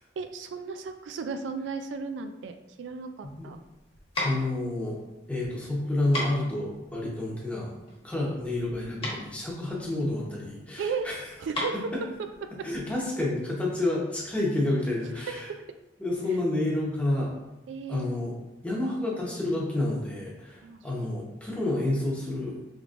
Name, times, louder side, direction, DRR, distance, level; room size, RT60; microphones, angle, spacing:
voice 1, 0.2-3.6 7.0-7.2 10.8-11.1 11.4-11.9 12.4-12.7 15.2-15.3 17.7-18.1 20.6-20.8, right 5 dB, 85° right, 8 dB, 0.3 m, -35 dB
sound 1, 3.2-13.1, left 1 dB, 30° left, 1.3 m, -37 dB
voice 2, 4.2-5.0 5.3-7.7 8.0-11.2 12.6-15.5 16.0-17.3 17.9-18.3 18.6-22.6, left 1 dB, 10° left, -5 dB, 1.0 m, -29 dB
5.0 x 3.2 x 2.5 m, 0.95 s
head